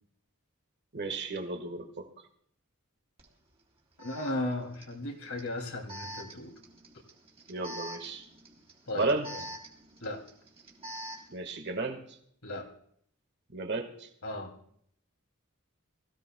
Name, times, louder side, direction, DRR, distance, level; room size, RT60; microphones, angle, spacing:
voice 1, 0.9-2.1 7.5-8.2 9.0-9.3 11.3-12.0 13.5-14.1, right 3 dB, 50° right, 5 dB, 1.6 m, -33 dB
Alarm, 3.2-3.3 4.0-11.4, right 1 dB, 25° right, 3.4 m, -46 dB
voice 2, 4.0-6.5 8.9-9.4 10.0-10.2 12.4-12.7 14.2-14.5, left 1 dB, 75° left, 2 dB, 2.8 m, -36 dB
24.5 x 16.0 x 2.3 m, 0.66 s
head